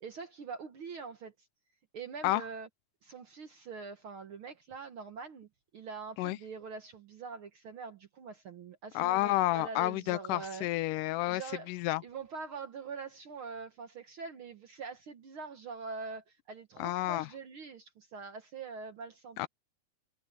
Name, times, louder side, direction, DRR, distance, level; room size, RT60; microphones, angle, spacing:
voice 1, 0.0-1.3 1.9-2.7 3.0-5.5 5.7-10.7 11.3-11.7 12.0-19.5, right 5 dB, 60° right, 1.5 m, -44 dB
voice 2, 9.0-11.4 11.7-12.0 16.8-17.3 19.4-19.5, left 17 dB, 85° left, 2.2 m, -30 dB
omnidirectional pair, 3.7 m